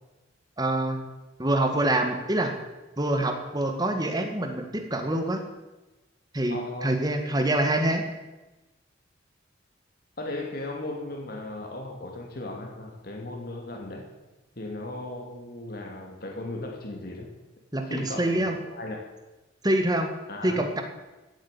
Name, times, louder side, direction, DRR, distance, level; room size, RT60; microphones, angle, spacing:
voice 1, 0.6-1.0 1.4-2.5 3.0-5.4 6.3-8.0 17.7-18.6 19.6-20.1 20.4-20.8, right 1 dB, 20° right, 5 dB, 2.0 m, -25 dB
voice 2, 6.5-7.0 10.2-14.1 14.6-17.3 17.9-19.0 20.3-20.6, left 2 dB, 50° left, 1 dB, 2.4 m, -36 dB
16.5 x 8.9 x 9.1 m, 1.1 s
head